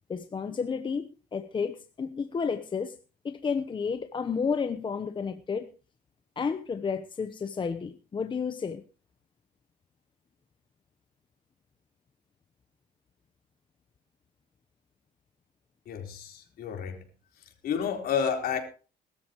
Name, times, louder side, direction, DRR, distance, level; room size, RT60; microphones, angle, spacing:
voice 1, 0.1-2.9 3.2-5.7 6.4-8.8, left 5 dB, 30° left, 1.0 m, -31 dB
voice 2, 15.9-17.0 17.6-18.6, left 7 dB, 65° left, 4.2 m, -30 dB
20.0 x 13.0 x 3.1 m
cardioid pair, 110°, 17 cm